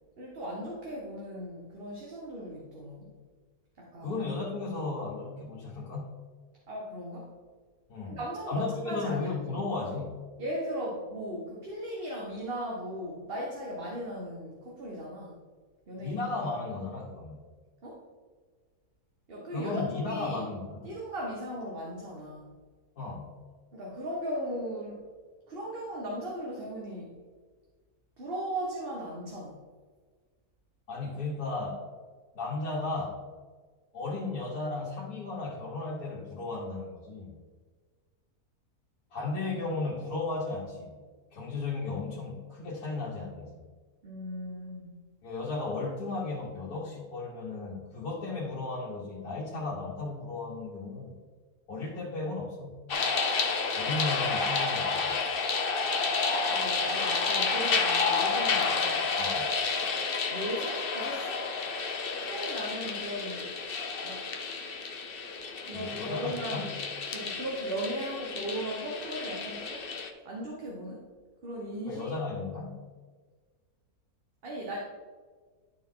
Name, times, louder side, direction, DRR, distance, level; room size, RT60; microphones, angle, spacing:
voice 1, 0.2-3.1 3.8-4.1 6.7-7.3 8.1-9.2 10.4-15.4 15.9-16.2 17.8-18.0 19.3-20.4 20.8-22.4 23.7-25.0 25.5-27.2 28.2-29.6 44.0-45.0 56.5-59.1 60.3-61.5 62.2-63.5 64.0-64.3 65.6-66.7 67.1-69.9 70.2-71.0 71.4-72.1 74.4-74.8, equal, 40° right, -3 dB, 1.2 m, -37 dB
voice 2, 4.0-6.2 7.9-8.2 8.5-10.2 16.0-17.4 19.5-20.9 23.0-23.4 30.9-31.8 32.4-33.2 33.9-37.3 39.1-41.0 41.3-43.5 45.2-51.1 51.7-52.8 53.8-55.2 59.2-59.5 65.7-66.7 71.9-72.8, left 3 dB, 85° left, -5 dB, 1.9 m, -35 dB
sound 1, 52.9-70.1, left 4 dB, 50° left, 0.7 m, -30 dB
12.0 x 4.3 x 3.7 m, 1.5 s
omnidirectional pair, 1.6 m